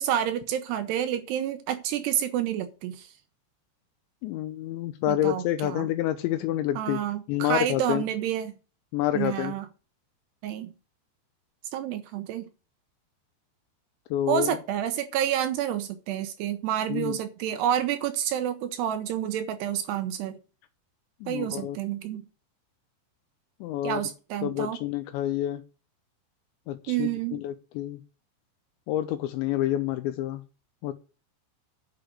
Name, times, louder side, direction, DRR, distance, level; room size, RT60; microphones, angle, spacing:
voice 1, 0.0-3.1 5.1-5.9 6.8-8.5 9.1-9.7 10.4-10.7 11.7-12.5 14.3-20.4 21.3-22.2 23.8-24.8 26.9-27.4, right 10 dB, 75° right, 2.7 m, -29 dB
voice 2, 4.2-7.0 7.3-8.0 8.9-9.5 14.1-14.5 16.9-17.1 21.2-21.8 23.6-24.0 24.4-25.6 26.7-28.0 28.9-30.4 30.8-30.9, left 12 dB, 80° left, 2.9 m, -28 dB
9.6 x 6.6 x 6.3 m
omnidirectional pair, 5.4 m